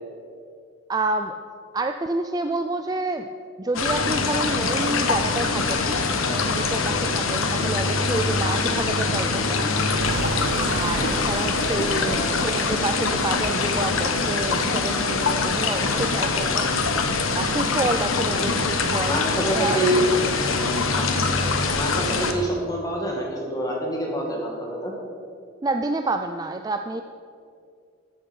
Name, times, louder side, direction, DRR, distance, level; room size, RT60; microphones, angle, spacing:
voice 1, 0.9-1.4 1.7-3.3 3.6-6.0 6.3-9.7 10.7-16.8 17.3-19.8 25.6-27.0, right 2 dB, 20° right, 6 dB, 0.3 m, -29 dB
sound 1, 3.7-22.3, left 4 dB, 80° left, 1.1 m, -23 dB
sound 2, 10.0-16.2, right 4 dB, 75° right, 0.5 m, -36 dB
voice 2, 11.7-12.2 19.1-20.0 21.0-21.1 21.8-24.9, right 1 dB, 15° left, -2 dB, 2.2 m, -27 dB
14.0 x 7.1 x 6.3 m, 2.3 s
head